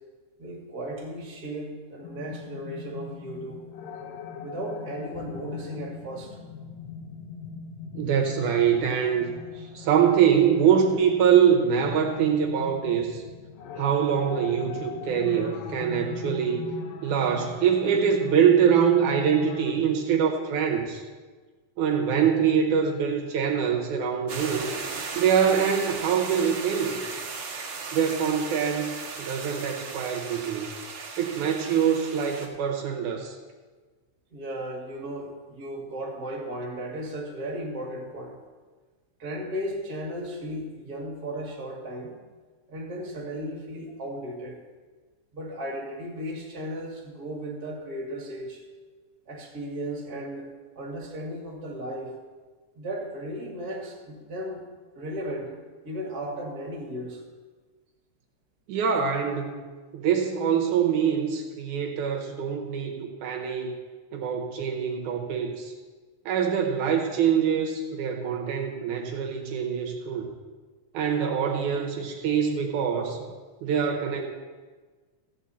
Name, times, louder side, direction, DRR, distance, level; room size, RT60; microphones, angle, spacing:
voice 1, 0.4-3.6 4.4-6.4 34.3-38.4 39.2-42.1 42.7-44.6 45.3-48.6 49.3-50.5 50.8-52.1 52.7-54.6 54.9-55.5 55.8-57.2, right 1 dB, 35° right, -2 dB, 2.4 m, -35 dB
sound 1, 2.0-19.7, left 6 dB, 70° left, 2.1 m, -40 dB
voice 2, 7.9-13.2 13.8-16.7 17.0-21.0 21.8-24.7 25.2-27.0 27.9-30.7 31.2-33.4 58.7-59.6 59.9-63.7 64.1-65.7 66.3-70.3 70.9-73.3 73.6-74.2, right 8 dB, 80° right, 2 dB, 2.4 m, -24 dB
sound 2, 24.3-32.5, right 4 dB, 55° right, 2.1 m, -36 dB
14.5 x 8.9 x 4.1 m, 1.4 s
omnidirectional pair, 3.5 m